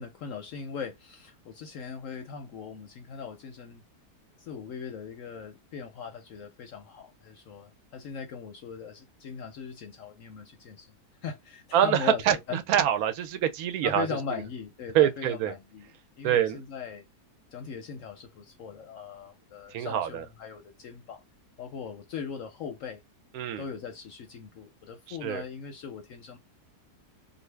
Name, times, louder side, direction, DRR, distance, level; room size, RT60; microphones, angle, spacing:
voice 1, 0.0-3.8 4.4-12.6 13.8-15.9 16.2-17.1 17.5-21.2 21.6-23.0 23.6-26.4, left 6 dB, 65° left, 0.8 m, -39 dB
voice 2, 11.7-14.1 14.9-15.5 16.2-16.6 19.7-20.2 23.3-23.6 25.1-25.4, right 10 dB, 70° right, 1.0 m, -25 dB
2.6 x 2.5 x 3.2 m
omnidirectional pair, 1.8 m